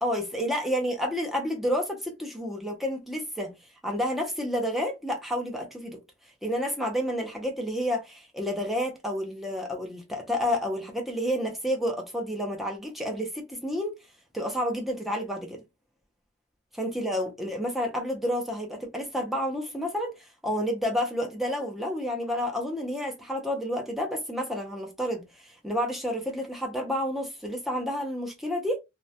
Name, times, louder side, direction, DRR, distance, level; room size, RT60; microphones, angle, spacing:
voice 1, 0.0-3.5 3.8-6.0 6.4-13.9 14.3-15.6 16.7-28.8, equal, ahead, 0.5 m, -30 dB
2.2 x 2.0 x 2.7 m
head